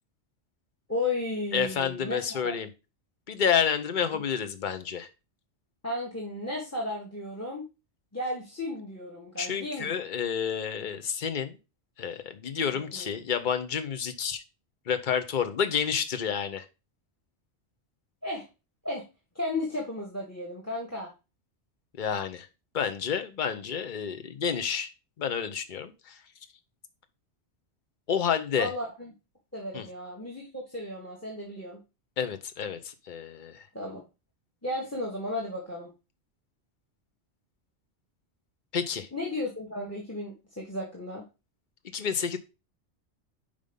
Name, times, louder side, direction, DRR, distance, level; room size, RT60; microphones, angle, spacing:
voice 1, 0.9-2.5 5.8-7.6 8.1-9.9 12.7-13.1 18.2-18.4 18.8-19.0 19.3-21.1 28.5-29.1 29.5-31.8 33.7-34.0 34.6-35.9 39.1-41.2, left 1 dB, 15° left, -1 dB, 1.5 m, -34 dB
voice 2, 1.5-2.7 3.3-5.1 9.4-11.6 12.0-14.4 14.9-16.7 22.0-22.5 22.7-24.9 25.2-26.2 28.1-28.7 29.7-29.9 32.2-33.7 38.7-39.1 41.9-42.4, left 7 dB, 45° left, 9 dB, 0.9 m, -29 dB
5.3 x 5.2 x 5.3 m, 0.28 s
omnidirectional pair, 1.2 m